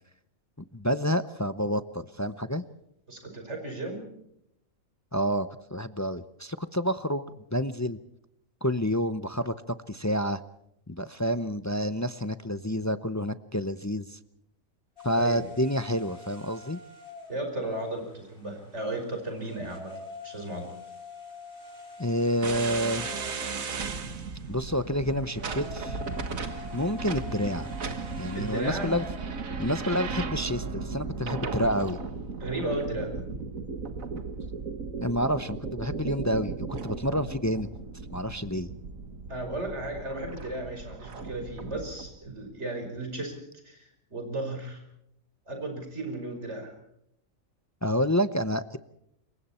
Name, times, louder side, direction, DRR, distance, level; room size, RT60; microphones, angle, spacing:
voice 1, 0.7-2.6 5.1-7.2 7.5-8.0 8.6-10.4 10.9-14.2 15.0-16.8 22.0-23.1 24.5-26.0 26.7-27.7 28.2-29.0 29.6-32.0 35.0-37.7 38.1-38.7 47.8-48.8, equal, 20° left, 12 dB, 0.6 m, -28 dB
voice 2, 3.1-4.0 15.2-15.5 17.3-19.9 20.2-20.7 28.3-29.0 32.4-33.2 39.3-43.4 43.6-44.8 45.5-46.7, right 2 dB, 55° right, 4 dB, 5.5 m, -35 dB
sound 1, 15.0-29.4, left 3 dB, 40° left, 4.9 m, -46 dB
sound 2, 22.4-42.1, right 4 dB, 75° right, 2.0 m, -36 dB
27.5 x 23.0 x 4.4 m, 0.76 s
omnidirectional pair, 1.4 m